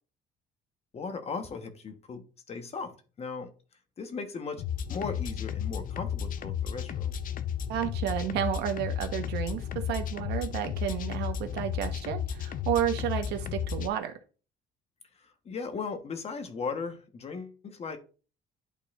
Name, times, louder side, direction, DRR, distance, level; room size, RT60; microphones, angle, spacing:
voice 1, 0.9-3.5 4.0-4.6 4.9-7.1 15.1-18.0, left 5 dB, 40° left, 1.1 m, -37 dB
sound 1, 4.6-13.9, left 8 dB, 55° left, 0.6 m, -33 dB
voice 2, 7.7-14.1, right 10 dB, 85° right, 1.1 m, -31 dB
11.0 x 4.1 x 2.4 m
cardioid pair, 110°, 17 cm